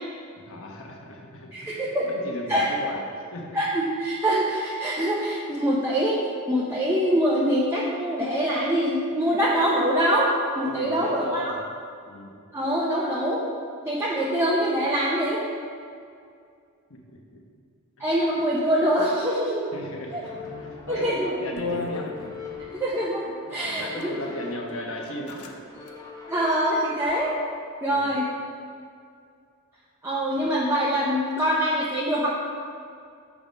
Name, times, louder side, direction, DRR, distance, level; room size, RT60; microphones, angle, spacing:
voice 1, 0.4-3.6 10.6-11.6 12.1-12.4 16.9-17.4 19.7-22.5 23.5-25.6 27.9-28.2 30.4-30.5, left 1 dB, 65° left, 0 dB, 1.1 m, -37 dB
voice 2, 1.5-2.1 2.5-2.7 3.5-6.2 6.5-11.5 12.5-13.4 13.8-15.4 18.0-19.7 20.1-20.2 20.9-21.3 22.7-24.1 26.3-27.3 27.8-28.3 30.0-32.4, equal, 10° right, -6 dB, 0.7 m, -24 dB
sound 1, 20.2-27.7, left 4 dB, 15° left, 0.8 m, -42 dB
sound 2, 20.7-21.0 21.6-22.7 23.7-24.1 24.7-24.8 25.0-25.5 25.8-25.9 26.4-27.1, left 4 dB, 80° left, 0.6 m, -36 dB
7.2 x 4.9 x 5.2 m, 2.3 s
head